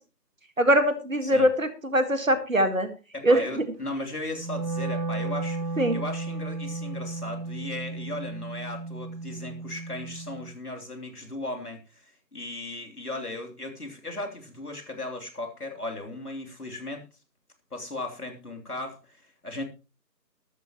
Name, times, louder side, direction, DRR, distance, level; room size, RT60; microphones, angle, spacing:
voice 1, 0.6-2.9 3.2-3.4 5.8-6.0, equal, 50° right, 9 dB, 1.9 m, -22 dB
voice 2, 3.1-17.0 17.7-19.6, left 2 dB, 60° left, 2 dB, 3.4 m, -36 dB
Wind instrument woodwind instrument, 4.3-10.5, right 3 dB, 75° right, 1.4 m, -34 dB
14.0 x 12.5 x 3.0 m, 0.31 s
figure-of-eight pair, 170°, 50 cm